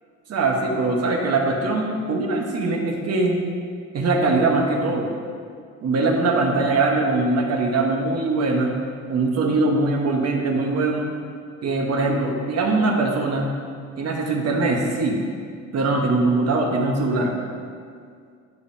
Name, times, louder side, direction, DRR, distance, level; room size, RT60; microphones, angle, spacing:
voice 1, 0.3-3.4 3.9-5.1 5.8-8.8 9.1-11.1 11.6-13.5 14.0-15.2 15.7-17.3, right 3 dB, 55° right, 1 dB, 1.3 m, -22 dB
11.0 x 5.1 x 2.8 m, 2.2 s
cardioid pair, 90°, 30 cm